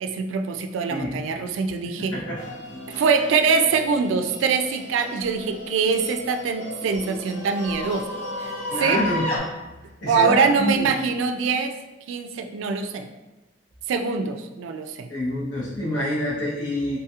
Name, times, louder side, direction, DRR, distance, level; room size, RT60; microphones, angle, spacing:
voice 1, 0.0-2.2 2.9-8.1 8.4-8.5 8.8-9.0 10.1-11.8 12.1-13.1 13.9-15.1, right 5 dB, 75° right, 7 dB, 0.3 m, -23 dB
voice 2, 2.0-2.4 8.7-9.3 10.0-10.9 15.1-17.0, left 1 dB, 75° left, -6 dB, 0.9 m, -27 dB
sound 1, 2.4-9.4, left 2 dB, 40° left, 0.7 m, -34 dB
3.9 x 2.3 x 2.8 m, 1.1 s
head